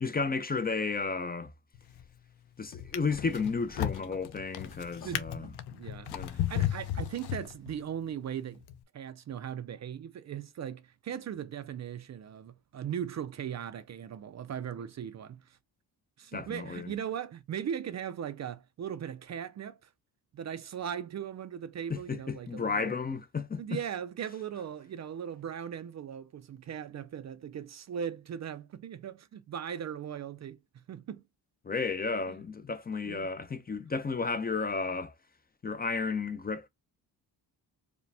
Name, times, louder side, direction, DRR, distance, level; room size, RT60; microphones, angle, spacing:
voice 1, 0.0-1.5 2.6-5.5 6.1-6.4 16.3-16.9 21.9-23.8 31.6-35.1 35.6-36.7, left 4 dB, 25° left, 0.5 m, -33 dB
Drawer open or close, 1.7-2.2 2.7-7.9 8.6-8.8, left 12 dB, 75° left, 0.7 m, -35 dB
sound 1, 2.8-5.8 6.5-7.5 7.8-7.9, left 6 dB, 50° left, 2.1 m, -53 dB
voice 2, 5.0-8.6 8.9-15.6 16.2-19.9 20.3-22.9 23.6-31.2 32.3-32.4 33.1-33.3, right 9 dB, 45° right, 0.5 m, -39 dB
4.9 x 2.2 x 3.3 m
cardioid pair, 120°, 40 cm